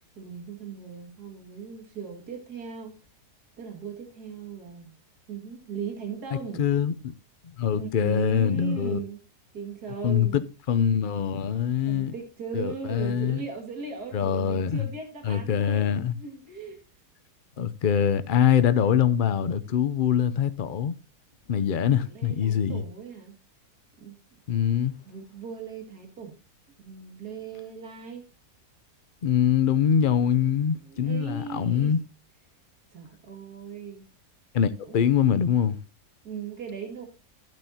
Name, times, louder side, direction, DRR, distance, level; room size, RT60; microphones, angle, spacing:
voice 1, 0.2-3.0 3.6-4.9 5.3-6.7 7.7-9.2 9.5-10.4 11.9-16.8 22.0-23.3 24.0-24.2 24.5-24.6 25.1-26.3 26.8-28.3 30.7-31.9 32.9-34.0 34.8-35.2 36.2-37.1, right 6 dB, 70° right, 2.7 m, -38 dB
voice 2, 6.6-7.1 7.4-9.0 10.0-12.1 12.5-13.4 14.1-14.9 15.2-16.2 17.6-20.9 21.5-22.8 24.5-24.9 29.2-32.0 34.5-35.8, left 8 dB, 65° left, 0.5 m, -24 dB
13.5 x 9.3 x 2.8 m
omnidirectional pair, 1.7 m